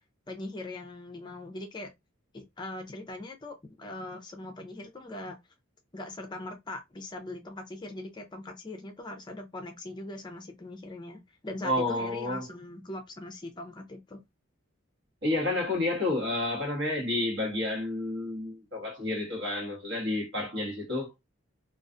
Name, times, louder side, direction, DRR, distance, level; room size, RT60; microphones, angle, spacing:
voice 1, 0.3-1.9 2.3-5.4 5.9-14.2, left 2 dB, 20° left, 0.4 m, -41 dB
voice 2, 11.6-12.5 15.2-21.1, left 2 dB, 60° right, 1.2 m, -30 dB
2.4 x 2.3 x 2.5 m
head